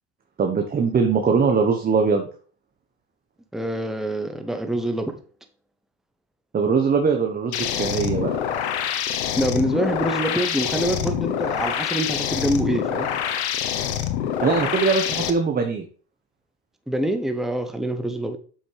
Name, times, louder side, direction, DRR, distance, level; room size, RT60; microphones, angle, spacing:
voice 1, 0.4-2.3 6.5-8.4 14.4-15.8, right 5 dB, 30° right, 5 dB, 1.1 m, -21 dB
voice 2, 3.5-5.2 9.4-13.1 16.9-18.4, right 1 dB, ahead, 6 dB, 0.9 m, -25 dB
sound 1, 7.5-15.3, left 9 dB, 85° left, 1.0 m, -26 dB
7.2 x 5.9 x 3.4 m, 0.41 s
supercardioid pair, 95°, 32 cm